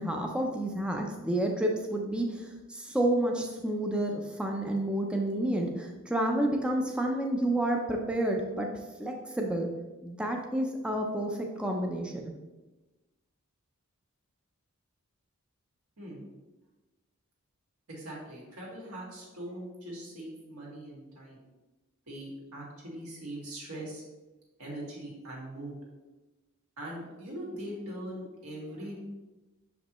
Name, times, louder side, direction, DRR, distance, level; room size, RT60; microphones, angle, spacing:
voice 1, 0.0-9.7 10.0-12.3, right 1 dB, 5° right, 1 dB, 0.5 m, -30 dB
voice 2, 17.9-21.4 22.1-24.0 24.6-25.8 26.8-29.0, right 1 dB, 80° right, -3 dB, 2.0 m, -41 dB
6.3 x 5.2 x 3.0 m, 1.1 s
head